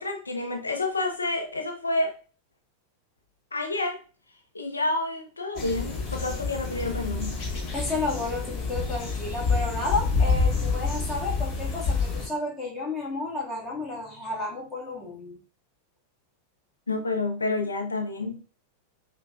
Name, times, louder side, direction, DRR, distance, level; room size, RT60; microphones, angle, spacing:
voice 1, 0.0-2.1 3.5-4.0 4.5-7.4 16.9-18.4, left 2 dB, 75° left, 0.5 m, -29 dB
sound 1, 5.6-12.3, left 4 dB, 40° left, 1.3 m, -28 dB
voice 2, 7.7-15.4, left 2 dB, 25° left, 1.3 m, -32 dB
5.4 x 2.2 x 2.4 m
figure-of-eight pair, 90°, 0 cm